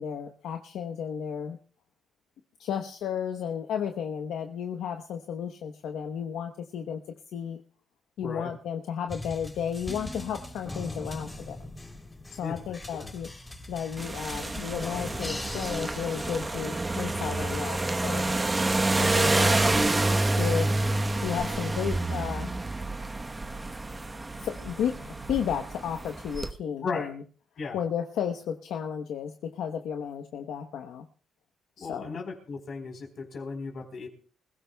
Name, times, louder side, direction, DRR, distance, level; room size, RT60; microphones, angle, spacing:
voice 1, 0.0-1.6 2.6-7.0 7.3-7.6 8.2-11.6 12.3-13.3 13.7-18.3 19.0-19.9 20.4-20.8 21.2-22.5 24.4-27.2 27.7-31.0 31.8-32.2, left 8 dB, 80° left, 5 dB, 1.0 m, -33 dB
voice 2, 8.2-8.5 12.4-13.1 26.8-27.1 27.6-27.8 31.8-34.1, left 4 dB, 55° left, 4 dB, 4.1 m, -36 dB
sound 1, 9.1-18.7, left 1 dB, 15° left, 3.3 m, -41 dB
sound 2, 14.0-26.5, right 2 dB, 20° right, 1.0 m, -28 dB
25.5 x 16.0 x 2.3 m, 0.43 s
cardioid pair, 90°, 0 cm